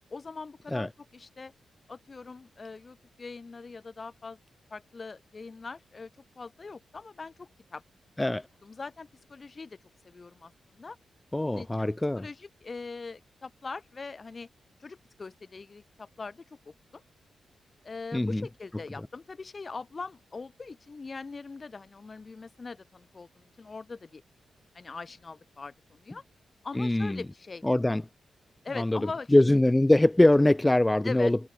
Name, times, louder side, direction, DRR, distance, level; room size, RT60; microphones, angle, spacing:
voice 1, 0.1-1.5 1.9-4.4 4.7-6.1 6.4-7.8 8.6-9.8 10.0-11.0 11.4-14.5 14.8-17.0 17.8-24.2 24.7-26.2 26.6-27.6 28.6-29.3 31.0-31.3, left 4 dB, 40° left, 3.0 m, -42 dB
voice 2, 11.3-12.3 18.1-18.5 26.7-27.2 27.6-28.0 28.8-31.4, left 1 dB, 15° left, 0.8 m, -23 dB
cardioid pair, 60°, 0 cm